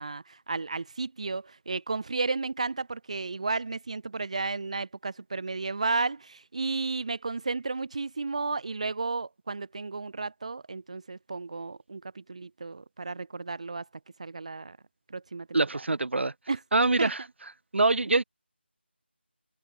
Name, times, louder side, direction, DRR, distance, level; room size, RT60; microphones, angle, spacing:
voice 1, 0.0-13.8 14.2-14.8 15.1-15.8 16.5-16.6 17.0-17.1, right 3 dB, 35° right, 1.0 m, -33 dB
voice 2, 15.5-16.3 16.7-17.2 17.7-18.2, right 2 dB, 80° right, 0.6 m, -24 dB
figure-of-eight pair, 175°, 6 cm